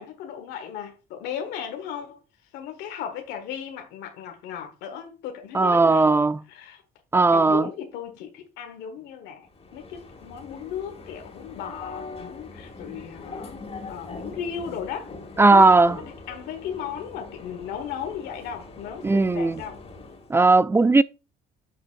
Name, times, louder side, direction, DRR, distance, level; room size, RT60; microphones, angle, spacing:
voice 1, 0.0-2.2 2.5-6.2 6.5-6.8 7.3-9.5 9.7-13.6 13.9-15.1 15.5-19.8, left 8 dB, 90° left, 1.4 m, -36 dB
voice 2, 5.5-6.4 7.1-7.6 15.4-16.0 19.0-19.6 20.3-21.0, right 3 dB, 15° right, 0.3 m, -17 dB
sound 1, 9.5-20.3, left 3 dB, 35° left, 2.4 m, -42 dB
9.3 x 6.1 x 2.5 m
cardioid pair, 110°, 17 cm